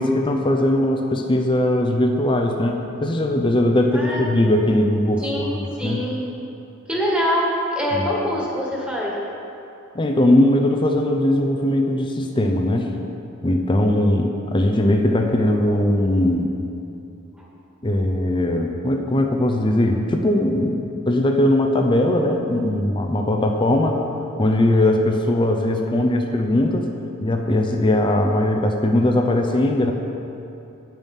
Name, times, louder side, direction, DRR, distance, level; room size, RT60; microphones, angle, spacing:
voice 1, 0.0-6.0 7.9-8.1 9.9-12.9 13.4-16.5 17.8-24.0 24.4-26.9 27.2-29.9, left 1 dB, 25° left, 3 dB, 0.6 m, -20 dB
voice 2, 3.9-4.3 5.2-6.3 6.9-9.1 17.4-17.5, equal, 5° right, -4 dB, 1.7 m, -24 dB
9.0 x 8.9 x 5.4 m, 2.8 s
head